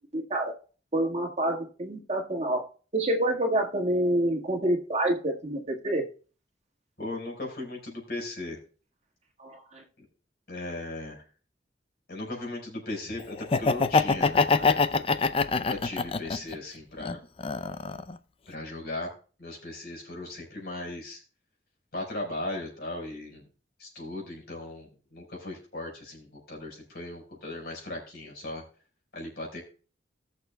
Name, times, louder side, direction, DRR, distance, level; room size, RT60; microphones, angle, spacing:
voice 1, 0.1-0.5 0.9-2.6 2.9-6.0 9.4-9.8, right 1 dB, 40° right, 1.6 m, -27 dB
voice 2, 7.0-8.6 10.0-10.1 10.5-11.2 12.1-15.1 15.7-17.2 18.5-19.1 19.4-21.2 21.9-23.4 23.8-28.6 29.1-29.6, left 2 dB, 60° left, 4.7 m, -37 dB
Laughter, 13.4-16.5 17.0-18.1, left 4 dB, 30° left, 0.4 m, -24 dB
19.5 x 6.7 x 2.2 m
head